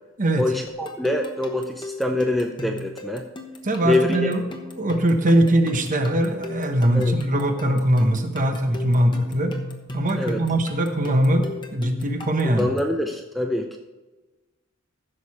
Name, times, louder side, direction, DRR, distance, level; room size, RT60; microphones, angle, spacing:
voice 1, 0.4-3.2 3.8-4.3 6.9-7.1 10.2-10.4 12.4-13.8, left 1 dB, ahead, 3 dB, 0.5 m, -25 dB
sound 1, 0.7-13.0, left 1 dB, 20° left, 1.1 m, -37 dB
voice 2, 3.6-4.5 4.8-9.5 9.9-12.7, right 1 dB, 40° right, 6 dB, 1.0 m, -21 dB
15.0 x 6.6 x 4.2 m, 1.2 s
head